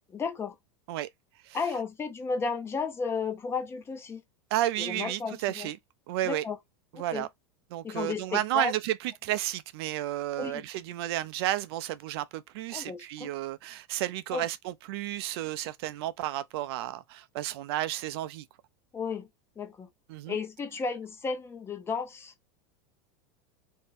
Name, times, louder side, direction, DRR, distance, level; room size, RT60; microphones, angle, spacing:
voice 1, 0.1-0.5 1.5-4.2 4.8-5.7 6.2-6.6 6.9-7.3 7.8-8.7 10.4-10.6 12.7-13.3 14.3-14.4 18.9-19.3 19.6-19.9 20.3-22.3, left 5 dB, 20° left, 0.5 m, -33 dB
voice 2, 4.5-5.8 6.1-6.4 6.9-7.3 7.7-18.5 20.1-20.4, right 14 dB, 65° right, 0.4 m, -32 dB
2.6 x 2.1 x 3.2 m
supercardioid pair, 140°, 14 cm